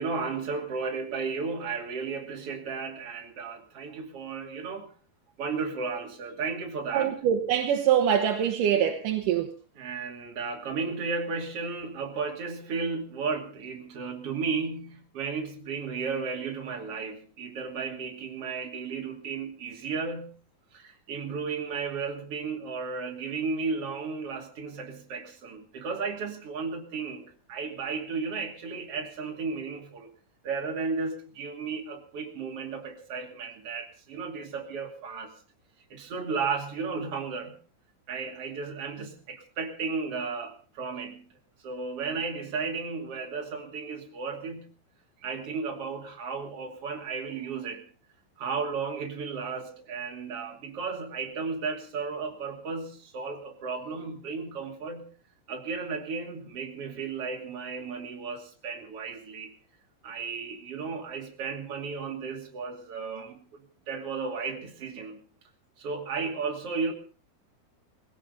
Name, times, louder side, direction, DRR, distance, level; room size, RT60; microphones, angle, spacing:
voice 1, 0.0-4.9 5.4-7.1 9.7-20.3 20.7-30.1 30.4-35.3 35.9-37.6 38.1-41.3 41.6-44.7 45.2-47.9 48.4-55.1 55.5-59.5 60.0-65.2 65.8-66.9, right 5 dB, 40° right, 2.9 m, -34 dB
voice 2, 6.9-9.5, right 9 dB, 75° right, 2.0 m, -24 dB
19.5 x 16.5 x 4.0 m
omnidirectional pair, 5.1 m